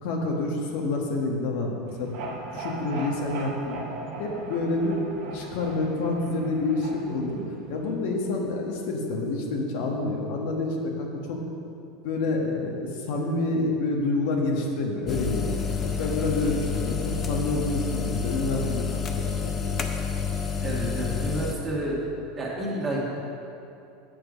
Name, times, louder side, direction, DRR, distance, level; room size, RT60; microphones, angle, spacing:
voice 1, 0.0-2.1 2.5-3.8 4.2-5.0 5.3-7.4 7.7-11.4 12.0-17.0 17.3-19.8, left 2 dB, 70° left, 0 dB, 1.2 m, -28 dB
sound 1, 1.9-7.9, right 2 dB, 60° right, 1.2 m, -38 dB
sound 2, 15.1-21.5, left 6 dB, 25° left, 0.6 m, -29 dB
voice 2, 20.6-22.0 22.4-23.0, right 1 dB, 20° right, -4 dB, 1.8 m, -30 dB
7.6 x 4.6 x 6.4 m, 2.7 s
supercardioid pair, 130°, 0 cm